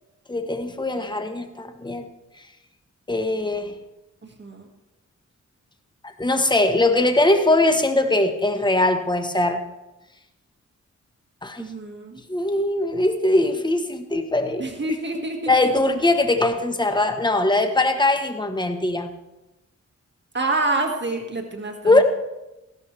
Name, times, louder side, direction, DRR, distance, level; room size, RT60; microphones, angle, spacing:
voice 1, 0.3-2.1 3.1-3.7 6.0-9.6 11.4-11.6 12.3-14.6 15.5-19.1 21.8-22.0, left 2 dB, 15° left, 7 dB, 1.2 m, -21 dB
voice 2, 4.2-4.7 11.6-12.2 14.6-15.7 20.3-22.0, right 2 dB, 40° right, 2 dB, 1.8 m, -27 dB
15.5 x 13.0 x 3.3 m, 0.98 s
cardioid pair, 80°, 30 cm